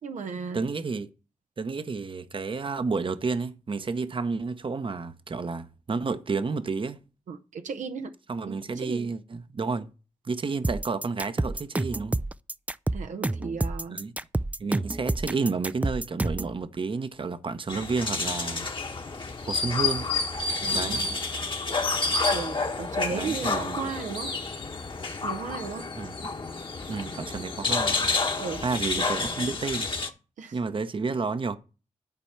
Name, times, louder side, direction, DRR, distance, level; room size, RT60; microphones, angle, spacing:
voice 1, 0.0-0.6 7.3-8.1 8.5-9.1 12.9-14.0 20.6-21.2 22.3-24.3 25.2-25.9 28.4-28.6 30.4-30.5, right 5 dB, 80° right, 0.7 m, -35 dB
voice 2, 0.5-1.1 1.6-7.0 8.3-9.9 10.2-12.2 13.9-14.1 14.6-18.7 19.4-20.1 20.7-21.1 23.1-23.9 25.9-26.1 26.9-28.1 28.6-29.9 30.5-31.6, right 4 dB, 45° right, 0.8 m, -31 dB
sound 1, 10.6-16.6, right 2 dB, 10° right, 0.3 m, -28 dB
sound 2, 17.7-30.1, left 4 dB, 40° left, 1.2 m, -29 dB
10.5 x 4.2 x 5.8 m
cardioid pair, 55°, 13 cm